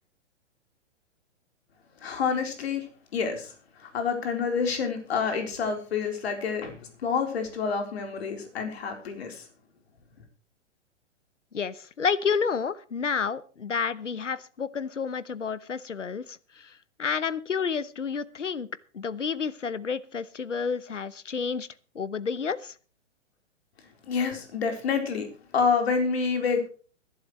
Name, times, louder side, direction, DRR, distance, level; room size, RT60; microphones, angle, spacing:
voice 1, 2.0-2.9 3.1-3.5 3.8-6.8 7.0-9.4 24.1-25.3 25.5-26.7, left 5 dB, 60° left, 4 dB, 3.9 m, -28 dB
voice 2, 11.5-16.7 17.0-18.7 18.9-21.7 21.9-22.7, left 6 dB, 85° left, 18 dB, 1.0 m, -30 dB
22.0 x 11.5 x 3.1 m, 0.38 s
figure-of-eight pair, 120°, 36 cm